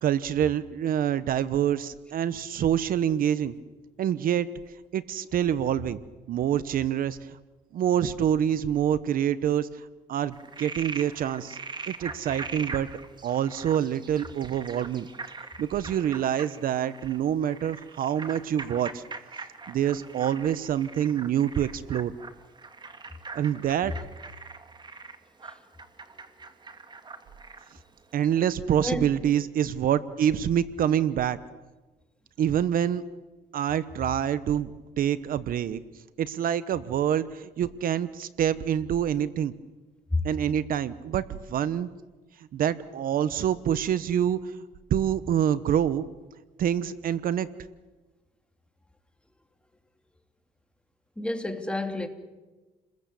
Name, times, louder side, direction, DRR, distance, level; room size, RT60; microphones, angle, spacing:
voice 1, 0.0-3.5 4.0-4.5 4.9-6.0 6.3-7.4 7.7-11.6 11.9-12.9 13.2-15.1 15.6-19.0 19.7-22.1 23.3-23.9 28.1-31.4 32.4-33.0 33.5-35.8 36.2-39.5 40.2-41.9 42.4-44.6 44.9-46.1 46.6-47.5, right 10 dB, 55° right, 14 dB, 1.0 m, -26 dB
Frog, 10.3-27.8, right 4 dB, 25° right, 2.3 m, -42 dB
voice 2, 51.2-52.1, left 2 dB, 5° left, 6 dB, 2.8 m, -29 dB
29.5 x 21.5 x 8.4 m, 1.2 s
cardioid pair, 110°, 17 cm